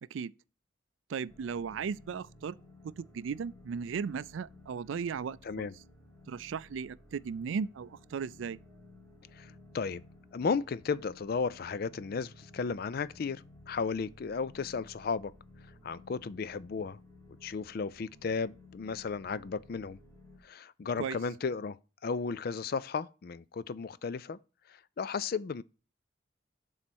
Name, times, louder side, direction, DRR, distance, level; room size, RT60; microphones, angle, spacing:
voice 1, 1.1-2.6 2.8-5.7 6.3-8.6 21.0-21.2, right 6 dB, 75° right, 0.4 m, -36 dB
sound 1, 1.3-20.4, left 2 dB, 15° left, 2.2 m, -56 dB
voice 2, 9.3-10.0 10.3-15.3 15.8-17.0 17.4-20.0 20.4-21.8 22.0-24.4 24.7-25.6, left 5 dB, 50° left, 0.4 m, -34 dB
7.4 x 3.9 x 6.2 m
head